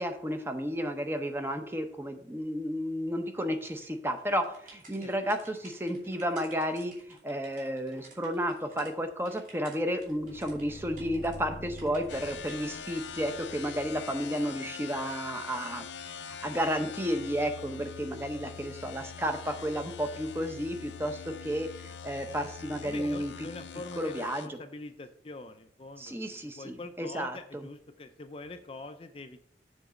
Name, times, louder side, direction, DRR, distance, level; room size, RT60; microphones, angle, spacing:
voice 1, 0.0-23.3 24.0-24.6 26.0-27.7, equal, 15° right, 7 dB, 0.7 m, -32 dB
sound 1, 3.6-8.9 9.2-11.4 11.8-12.6, right 3 dB, 45° right, 2.5 m, -54 dB
sound 2, 9.8-14.7, left 1 dB, 75° right, 1.6 m, -48 dB
sound 3, 12.1-24.5, left 7 dB, 85° left, 0.5 m, -43 dB
voice 2, 22.8-29.4, left 2 dB, 30° left, 8 dB, 0.4 m, -44 dB
7.1 x 4.0 x 6.3 m, 0.64 s
head